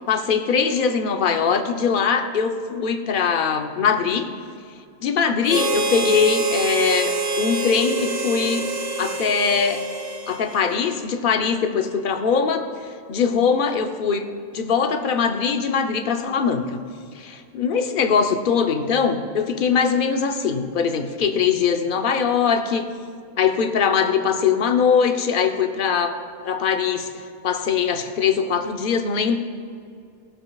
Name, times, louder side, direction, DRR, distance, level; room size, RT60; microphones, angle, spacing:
voice 1, 0.1-4.3 5.0-8.7 9.0-9.8 10.3-12.7 13.1-14.3 14.5-16.8 17.2-22.8 23.4-27.1 27.4-29.4, left 6 dB, 60° left, 6 dB, 0.9 m, -21 dB
Harmonica, 5.5-11.0, right 3 dB, 50° right, 0.8 m, -26 dB
19.0 x 7.8 x 2.3 m, 2.3 s
omnidirectional pair, 1.0 m